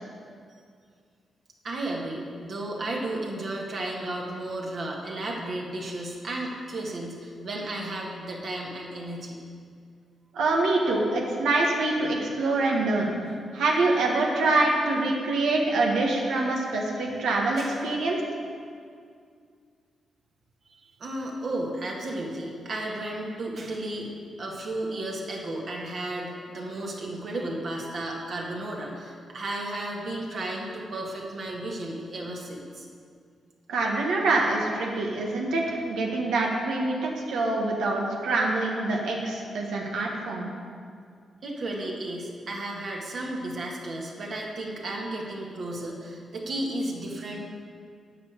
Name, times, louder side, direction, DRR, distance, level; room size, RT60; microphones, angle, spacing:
voice 1, 1.6-9.4 17.6-17.8 20.7-24.1 24.4-32.9 41.4-47.4, right 1 dB, 60° right, -2 dB, 1.9 m, -33 dB
voice 2, 10.3-13.1 13.5-18.2 33.7-40.5, right 2 dB, 90° right, -1 dB, 1.6 m, -25 dB
9.7 x 5.3 x 8.1 m, 2.2 s
cardioid pair, 70°, 0 cm